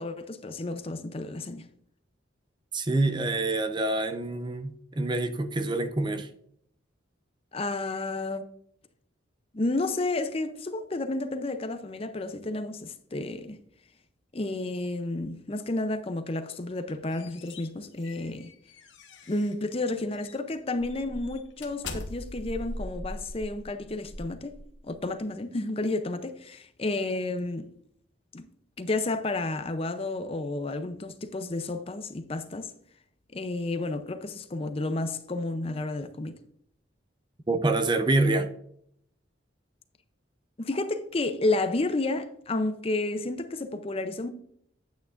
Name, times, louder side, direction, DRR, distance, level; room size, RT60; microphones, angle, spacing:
voice 1, 0.0-1.7 7.5-8.4 9.5-13.6 14.3-18.5 19.3-27.7 28.3-28.5 28.8-32.7 33.3-36.4 40.6-44.3, left 2 dB, 30° left, 0.5 m, -31 dB
voice 2, 2.7-6.3 37.5-38.5, right 2 dB, 25° right, 0.5 m, -26 dB
sound 1, 16.7-19.7 20.1-20.4 20.8-25.0, left 1 dB, 65° left, 1.2 m, -41 dB
9.2 x 8.5 x 2.5 m
head